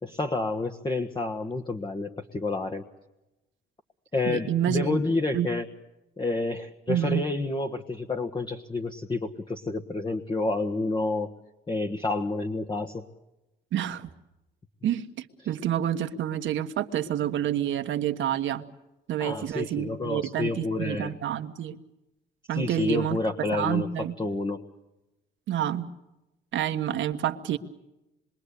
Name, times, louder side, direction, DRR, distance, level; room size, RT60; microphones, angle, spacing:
voice 1, 0.0-2.8 4.1-5.7 6.2-11.3 11.7-13.1 19.2-21.1 22.5-23.9 24.2-24.6, left 3 dB, 25° left, 5 dB, 1.4 m, -29 dB
voice 2, 4.3-5.0 5.3-5.5 6.9-7.2 13.7-14.1 14.8-18.6 19.1-21.8 22.5-24.1 25.5-25.9 26.5-27.6, right 10 dB, 75° right, 7 dB, 1.4 m, -28 dB
26.5 x 22.5 x 8.4 m, 0.95 s
cardioid pair, 90°, 20 cm